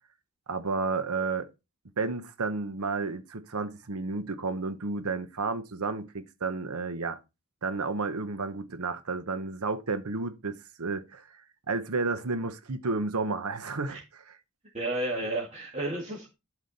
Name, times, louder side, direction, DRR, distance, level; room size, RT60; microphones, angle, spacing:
voice 1, 0.5-1.5 2.0-7.2 7.6-11.3 11.7-14.4, right 3 dB, 90° right, 1.0 m, -32 dB
voice 2, 14.7-16.3, right 1 dB, 30° right, 2.1 m, -32 dB
11.5 x 5.0 x 4.1 m
head